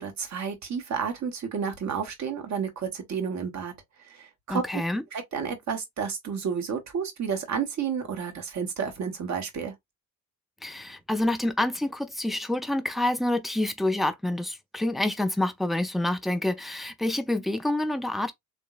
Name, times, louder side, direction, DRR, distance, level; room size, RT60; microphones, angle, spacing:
voice 1, 0.0-3.7 4.0-4.8 5.1-9.7, right 6 dB, 40° right, 1.2 m, -31 dB
voice 2, 4.5-5.0 10.6-18.3, left 1 dB, ahead, 0.3 m, -27 dB
3.7 x 2.5 x 2.4 m
figure-of-eight pair, 50°, 42 cm